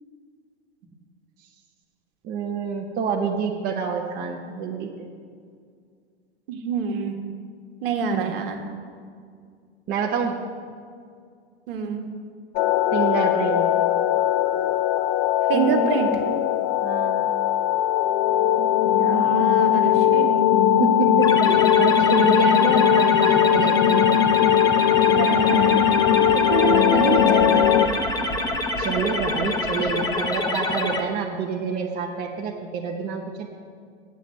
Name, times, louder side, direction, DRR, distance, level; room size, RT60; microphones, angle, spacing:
voice 1, 2.2-5.1 8.1-8.3 9.9-10.4 12.9-13.6 15.5-16.5 16.8-17.3 20.8-24.1 28.8-33.5, right 5 dB, 30° right, 0 dB, 0.9 m, -27 dB
voice 2, 6.5-7.1 7.8-8.6 11.7-12.1 15.5-16.1 19.0-20.2 25.1-25.8 26.3-28.0, right 5 dB, 55° right, 3 dB, 1.5 m, -26 dB
sound 1, 12.6-27.9, left 10 dB, 25° left, 0.4 m, -19 dB
sound 2, 21.2-31.0, left 2 dB, 10° left, 0.9 m, -27 dB
8.4 x 7.1 x 7.9 m, 2.2 s
figure-of-eight pair, 100°, 33 cm